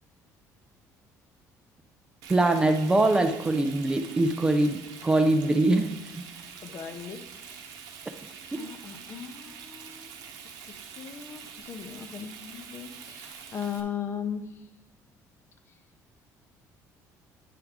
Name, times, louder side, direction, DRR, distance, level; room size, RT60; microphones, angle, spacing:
Frying (food), 2.2-13.8, right 7 dB, 80° right, 0.9 m, -45 dB
voice 1, 2.3-5.9 8.5-8.6, right 2 dB, 15° right, 7 dB, 0.4 m, -23 dB
voice 2, 6.6-7.7 8.5-14.7 15.7-15.8, left 8 dB, 40° left, 8 dB, 0.6 m, -38 dB
10.0 x 4.6 x 3.6 m, 1.1 s
cardioid pair, 150°, 6 cm